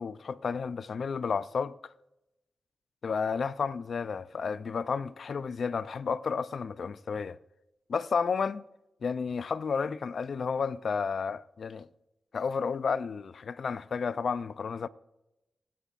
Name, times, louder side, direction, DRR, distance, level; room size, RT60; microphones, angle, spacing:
voice 1, 0.0-1.7 3.0-7.4 7.9-8.6 9.0-11.9 12.3-14.9, left 5 dB, 70° left, 0.4 m, -31 dB
22.0 x 8.2 x 2.5 m
cardioid pair, 45°, 0 cm